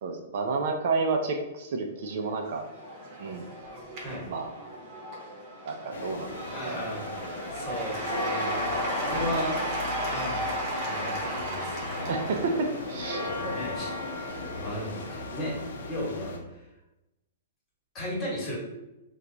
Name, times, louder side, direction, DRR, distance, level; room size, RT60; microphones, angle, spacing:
voice 1, 0.0-2.6 3.2-3.5 4.3-4.5 5.7-6.3 6.6-6.8 12.1-13.3, right 4 dB, 55° right, 4 dB, 0.4 m, -30 dB
Cheering / Applause / Crowd, 2.2-15.7, right 1 dB, 35° right, 0.9 m, -35 dB
sound 1, 5.9-16.4, left 3 dB, 80° left, 0.6 m, -37 dB
voice 2, 6.5-7.1 7.5-12.2 13.2-14.3 14.5-16.7 17.9-18.6, left 1 dB, 20° left, -5 dB, 1.1 m, -36 dB
2.9 x 2.3 x 3.8 m, 0.96 s
hypercardioid pair, 155°, 0 cm